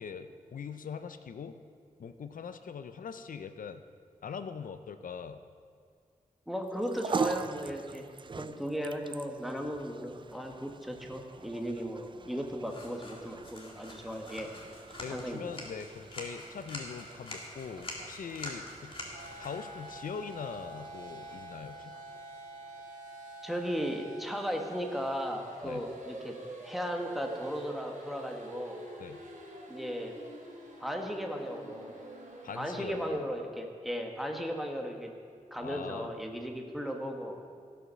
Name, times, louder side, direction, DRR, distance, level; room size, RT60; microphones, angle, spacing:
voice 1, 0.0-1.6 2.0-3.8 4.2-5.4 15.0-18.9 19.4-21.9 25.6-25.8 29.0-29.2 32.4-33.3 35.6-36.1, left 6 dB, 80° left, 10 dB, 0.6 m, -42 dB
voice 2, 6.5-8.1 8.4-14.5 15.1-15.5 23.4-26.4 26.6-28.8 29.7-30.1 30.8-32.0 32.6-35.1 35.5-37.4, equal, ahead, 2 dB, 1.3 m, -36 dB
sound 1, 6.6-23.1, right 5 dB, 35° right, 0.3 m, -43 dB
sound 2, 12.6-21.7, left 1 dB, 40° left, 2.0 m, -46 dB
sound 3, 19.1-33.1, right 2 dB, 75° right, 2.4 m, -47 dB
16.5 x 5.8 x 6.3 m, 2.1 s
wide cardioid pair, 100°, 14 cm